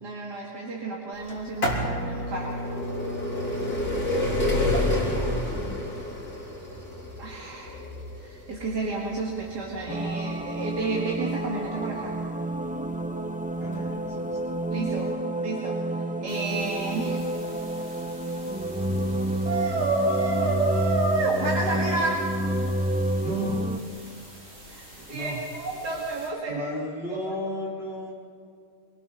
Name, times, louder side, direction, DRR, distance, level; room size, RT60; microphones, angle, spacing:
voice 1, 0.0-2.6 7.2-7.8 8.1-12.2 14.7-17.2 19.4-22.2 24.7-26.6 27.1-27.4, right 3 dB, 75° right, -3 dB, 2.8 m, -30 dB
sound 1, 1.3-12.9 13.8-13.9 14.8-14.9 15.1-15.2, left 1 dB, 60° left, 4.1 m, -29 dB
voice 2, 4.2-5.8 13.6-14.4 23.2-23.8 25.1-25.4 26.5-28.1, equal, 35° left, -4 dB, 4.1 m, -34 dB
sound 2, 9.9-23.8, right 1 dB, 10° right, 0.4 m, -29 dB
sound 3, 16.3-26.3, right 1 dB, 40° right, 7.2 m, -47 dB
26.0 x 19.5 x 5.6 m, 2.5 s
omnidirectional pair, 1.8 m